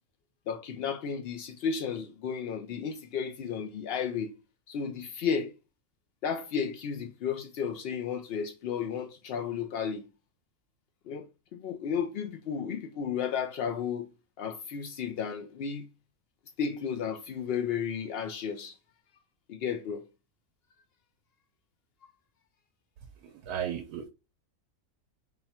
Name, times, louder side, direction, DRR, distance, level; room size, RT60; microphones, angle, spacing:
voice 1, 0.5-4.3 4.7-5.5 6.2-10.1 11.1-11.3 11.5-14.1 14.4-15.9 16.6-18.8 19.5-20.0, left 7 dB, 90° left, 0.5 m, -33 dB
voice 2, 23.4-24.1, right 9 dB, 85° right, 1.1 m, -34 dB
3.5 x 2.2 x 4.1 m
omnidirectional pair, 1.6 m